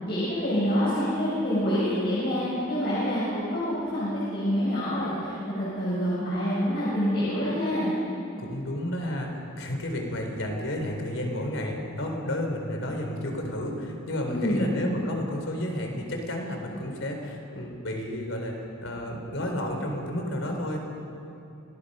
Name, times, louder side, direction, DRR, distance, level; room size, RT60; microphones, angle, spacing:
voice 1, 0.1-7.9 14.3-14.6, equal, 55° left, -9 dB, 7.7 m, -27 dB
voice 2, 8.4-18.5 18.8-20.8, left 1 dB, 70° left, 2 dB, 4.1 m, -31 dB
28.5 x 20.5 x 5.6 m, 2.7 s
head